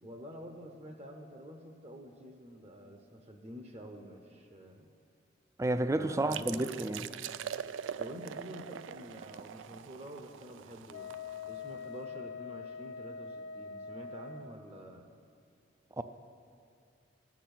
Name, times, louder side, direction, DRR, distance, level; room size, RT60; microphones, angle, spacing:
voice 1, 0.0-4.9 5.9-7.0 8.0-11.1 11.5-15.1, equal, 35° right, 0.8 m, -48 dB
voice 2, 5.6-7.0 16.0-16.1, right 2 dB, 15° right, 0.4 m, -30 dB
sound 1, 6.3-11.8, right 8 dB, 85° right, 0.3 m, -43 dB
Wind instrument woodwind instrument, 10.9-14.6, left 5 dB, 75° left, 0.5 m, -43 dB
13.5 x 6.1 x 8.6 m
head